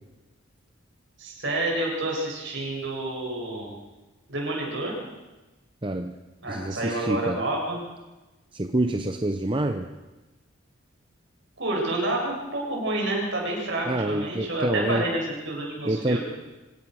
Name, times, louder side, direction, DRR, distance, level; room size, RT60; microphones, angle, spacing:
voice 1, 1.2-3.7 4.3-5.0 6.4-7.9 11.6-15.2 15.4-16.2, right 2 dB, 60° right, -1 dB, 7.9 m, -29 dB
voice 2, 5.8-6.1 6.5-7.4 8.5-9.9 13.9-15.1 15.8-16.2, right 1 dB, 25° right, 7 dB, 0.8 m, -27 dB
26.0 x 17.0 x 6.5 m, 1.1 s
head